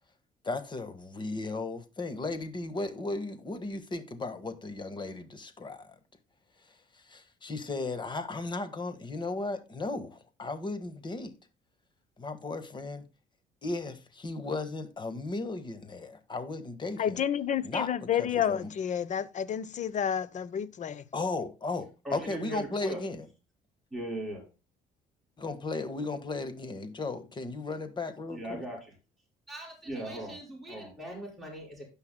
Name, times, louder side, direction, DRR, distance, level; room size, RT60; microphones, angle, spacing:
voice 1, 0.4-5.9 6.9-11.3 12.2-13.0 13.6-17.2 17.6-17.9 18.2-18.7 21.1-23.3 25.4-28.7, left 3 dB, 25° left, 1.6 m, -35 dB
voice 2, 17.0-21.0, left 9 dB, 45° left, 0.8 m, -30 dB
voice 3, 22.0-23.0 23.9-24.4 28.3-28.9 29.5-31.8, right 1 dB, ahead, 5.4 m, -39 dB
16.5 x 5.7 x 2.2 m
cardioid pair, 110°, 17 cm